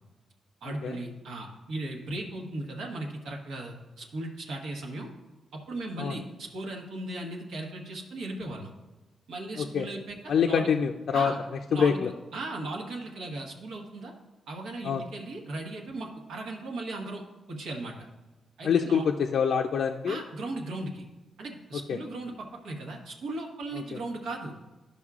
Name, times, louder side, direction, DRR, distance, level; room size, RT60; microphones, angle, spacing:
voice 1, 0.6-5.1 5.5-8.7 9.3-10.7 11.1-11.4 11.7-12.0 12.3-14.1 14.5-17.2 17.5-17.9 18.6-19.0 20.1-21.0 21.4-24.5, right 2 dB, 90° right, 1 dB, 1.2 m, -37 dB
voice 2, 9.6-9.9 10.3-11.3 11.7-12.1 14.8-15.0 18.6-20.2 21.9-22.0 23.7-23.8, left 7 dB, 65° left, 3 dB, 0.4 m, -25 dB
12.5 x 5.3 x 2.4 m, 1.1 s
cardioid pair, 135°, 0 cm